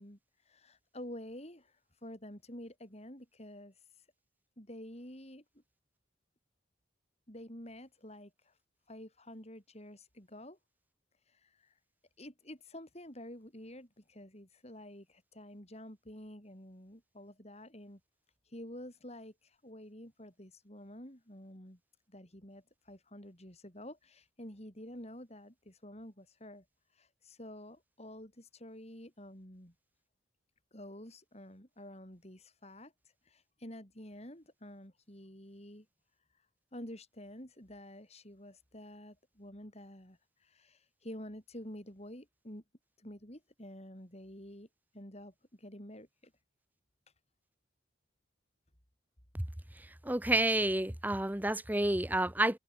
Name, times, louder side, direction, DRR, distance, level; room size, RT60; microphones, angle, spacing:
voice 1, 0.0-4.1 4.6-5.6 7.3-8.5 8.9-10.6 11.3-11.8 12.2-18.0 18.5-21.8 22.1-26.7 26.9-29.7 30.7-32.9 33.2-35.9 36.7-42.6 43.0-44.7 44.9-46.3, left 1 dB, 35° left, 6.0 m, -49 dB
voice 2, 49.8-52.6, right 1 dB, 10° right, 0.9 m, -30 dB
open air
head